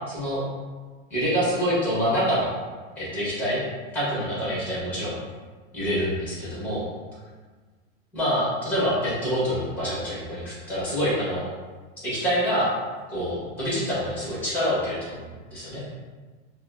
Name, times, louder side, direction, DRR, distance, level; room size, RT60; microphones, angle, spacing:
voice 1, 0.1-0.4 1.1-2.5 3.0-3.6 3.9-5.2 5.7-6.8 8.1-11.4 12.0-12.7 13.1-15.8, equal, 5° left, -8 dB, 1.2 m, -26 dB
5.2 x 2.2 x 2.6 m, 1.4 s
supercardioid pair, 170°, 35 cm